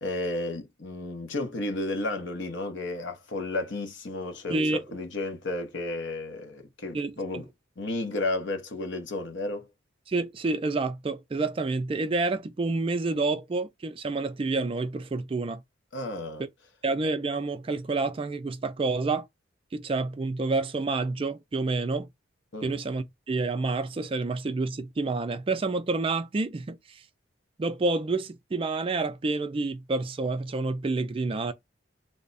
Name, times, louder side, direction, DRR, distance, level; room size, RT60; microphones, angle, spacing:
voice 1, 0.0-7.4 7.8-9.7 15.9-16.4 22.5-22.7, left 2 dB, 65° left, 0.8 m, -32 dB
voice 2, 4.5-4.8 6.9-7.4 10.1-15.6 16.8-19.3 19.7-22.1 22.6-27.0 27.6-31.5, right 3 dB, 30° right, 0.3 m, -28 dB
3.3 x 2.1 x 3.9 m
head